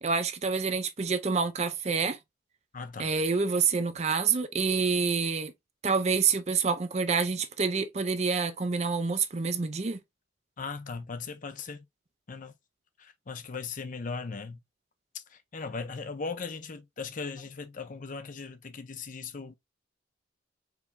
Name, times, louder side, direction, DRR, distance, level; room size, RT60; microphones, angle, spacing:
voice 1, 0.0-2.2 3.0-5.5 5.8-10.0, right 5 dB, 35° right, 0.6 m, -27 dB
voice 2, 2.7-3.1 10.6-11.8 12.3-12.5 13.0-14.6 15.1-19.6, left 4 dB, 45° left, 0.5 m, -38 dB
4.7 x 3.4 x 2.5 m
head